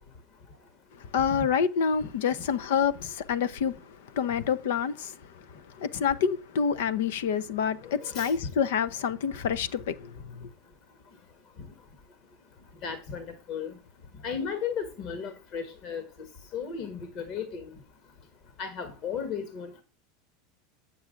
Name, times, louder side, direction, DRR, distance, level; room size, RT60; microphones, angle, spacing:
voice 1, 0.9-10.5, left 7 dB, 80° left, 0.6 m, -28 dB
voice 2, 7.8-8.5 12.8-13.8 14.2-16.1 16.5-17.7 18.6-19.8, left 6 dB, 50° left, 1.5 m, -35 dB
8.1 x 7.0 x 3.7 m
supercardioid pair, 115°, 0 cm